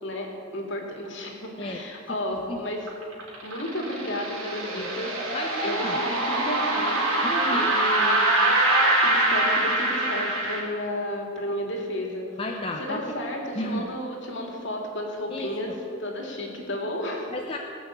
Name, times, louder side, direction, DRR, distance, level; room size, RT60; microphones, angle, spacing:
voice 1, 0.0-2.8 3.4-5.2 5.6-7.0 7.5-8.2 9.0-12.3 12.8-17.3, left 1 dB, 60° left, 1 dB, 2.5 m, -32 dB
voice 2, 2.1-2.6 4.8-4.9 5.3-6.0 7.2-7.7 12.4-13.1 13.6-13.9 15.3-15.7 17.3-17.6, left 1 dB, 25° left, 1 dB, 0.8 m, -33 dB
sound 1, 2.9-10.6, right 2 dB, 90° right, 4.1 m, -24 dB
19.0 x 6.4 x 8.5 m, 2.5 s
head